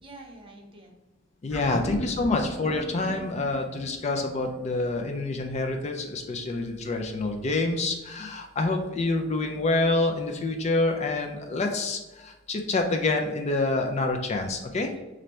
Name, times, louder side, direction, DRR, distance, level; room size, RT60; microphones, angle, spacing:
voice 1, 0.0-0.9 1.6-2.3, right 2 dB, 25° right, 1 dB, 0.6 m, -48 dB
voice 2, 1.4-14.9, left 2 dB, 35° left, 4 dB, 0.4 m, -27 dB
sound 1, 1.5-6.1 6.4-6.5, equal, 75° left, 1.0 m, -39 dB
3.2 x 2.6 x 4.2 m, 1.1 s
head